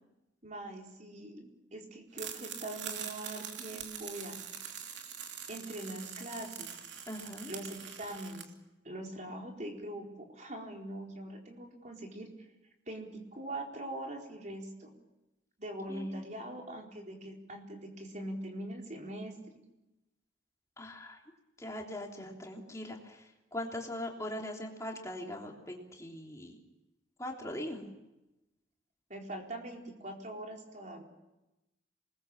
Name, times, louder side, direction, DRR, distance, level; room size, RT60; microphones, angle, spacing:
voice 1, 0.4-4.7 5.5-6.8 7.5-8.5 8.8-12.3 12.9-14.9 15.6-19.3 29.1-31.0, right 1 dB, 40° right, 1 dB, 4.4 m, -42 dB
sound 1, 2.1-8.4, right 7 dB, 75° right, 3.0 m, -43 dB
voice 2, 7.1-7.5 15.9-16.2 20.8-21.2 21.6-26.5 27.2-27.9, left 1 dB, 15° left, 0 dB, 3.4 m, -41 dB
27.5 x 20.5 x 7.2 m, 0.97 s
head